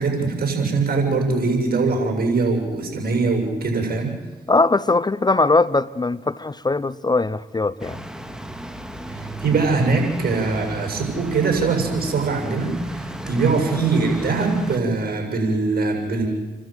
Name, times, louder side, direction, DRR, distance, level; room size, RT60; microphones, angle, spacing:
voice 1, 0.0-4.1 9.1-16.3, right 4 dB, 55° right, 7.3 m, -22 dB
voice 2, 4.5-8.0, left 3 dB, 25° left, 0.7 m, -20 dB
sound 1, 7.8-14.8, right 1 dB, 5° right, 2.3 m, -34 dB
29.0 x 12.5 x 9.1 m
supercardioid pair, 50°, 18 cm